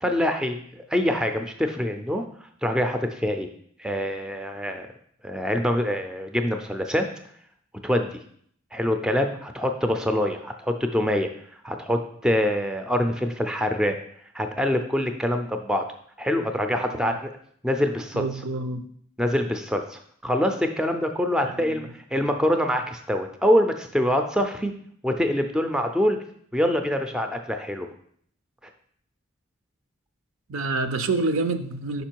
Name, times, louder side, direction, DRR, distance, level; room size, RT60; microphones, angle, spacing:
voice 1, 0.0-2.2 2.6-3.5 3.8-4.9 5.2-7.0 7.8-8.2 8.7-11.3 11.6-14.0 14.3-15.8 16.2-17.3 17.6-18.2 19.2-24.7 25.0-26.2 26.5-27.9, equal, 5° right, 5 dB, 0.4 m, -25 dB
voice 2, 16.8-17.2 18.1-18.8 21.4-21.9 30.5-32.0, right 3 dB, 70° right, 9 dB, 0.5 m, -28 dB
5.2 x 5.1 x 4.5 m, 0.64 s
head